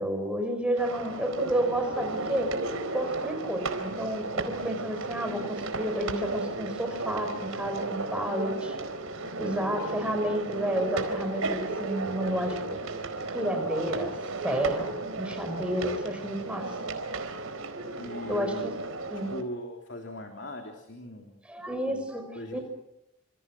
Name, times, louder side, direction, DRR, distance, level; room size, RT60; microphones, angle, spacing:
voice 1, 0.0-2.5 2.9-8.8 9.4-12.8 13.3-14.1 14.4-16.8 18.3-18.7 19.1-19.3 21.5-22.6, right 1 dB, 5° right, 5 dB, 6.0 m, -31 dB
sound 1, 0.8-19.4, right 3 dB, 90° right, 4.4 m, -34 dB
voice 2, 9.2-9.7 18.0-18.7 19.1-21.4 21.9-22.0 22.3-22.6, left 1 dB, 55° left, 3 dB, 3.5 m, -40 dB
29.5 x 27.5 x 6.3 m, 0.84 s
head